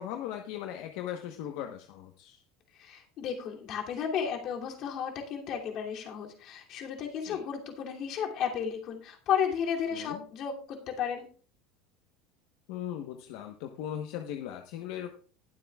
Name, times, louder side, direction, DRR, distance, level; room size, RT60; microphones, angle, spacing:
voice 1, 0.0-2.4 7.2-7.4 9.9-10.3 12.7-15.2, left 10 dB, 70° left, 4 dB, 1.1 m, -38 dB
voice 2, 2.8-10.5 10.9-11.2, left 8 dB, 45° left, 0 dB, 2.7 m, -33 dB
20.0 x 7.7 x 2.4 m, 0.41 s
cardioid pair, 150°, 0 cm